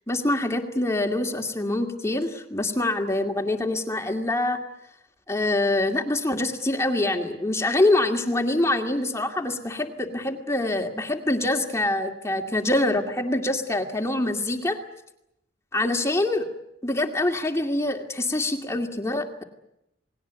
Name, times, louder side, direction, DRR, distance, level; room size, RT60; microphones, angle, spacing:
voice 1, 0.1-4.6 5.3-14.8 15.7-16.5 16.8-19.4, left 2 dB, 15° left, 3 dB, 2.2 m, -25 dB
29.0 x 20.0 x 8.2 m, 0.82 s
head